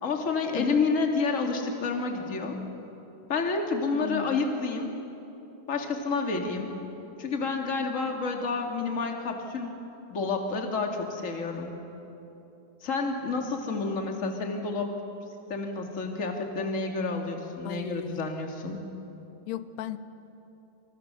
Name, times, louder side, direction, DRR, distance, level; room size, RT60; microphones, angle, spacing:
voice 1, 0.0-2.6 3.3-4.9 5.7-6.7 7.2-9.7 10.1-11.7 12.8-14.9 15.5-18.8, left 4 dB, 25° left, 2 dB, 2.0 m, -29 dB
voice 2, 0.5-0.8 4.0-4.5 17.6-18.3 19.5-20.0, left 11 dB, 80° left, 12 dB, 2.7 m, -35 dB
28.5 x 28.5 x 7.0 m, 3.0 s
omnidirectional pair, 4.9 m